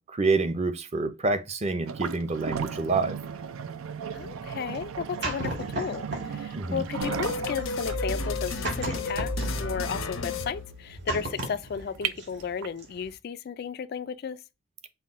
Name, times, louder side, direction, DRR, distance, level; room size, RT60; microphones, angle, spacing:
voice 1, 0.1-3.2 6.5-6.8, right 3 dB, 30° right, 0.5 m, -27 dB
sound 1, 1.8-12.9, right 7 dB, 90° right, 0.5 m, -36 dB
voice 2, 4.1-14.4, left 6 dB, 50° left, 0.3 m, -34 dB
sound 2, 4.2-6.4 6.7-12.5 12.8-13.1, right 2 dB, 60° right, 1.6 m, -36 dB
sound 3, 7.0-11.3, left 3 dB, 80° left, 0.8 m, -32 dB
5.7 x 2.2 x 3.5 m
head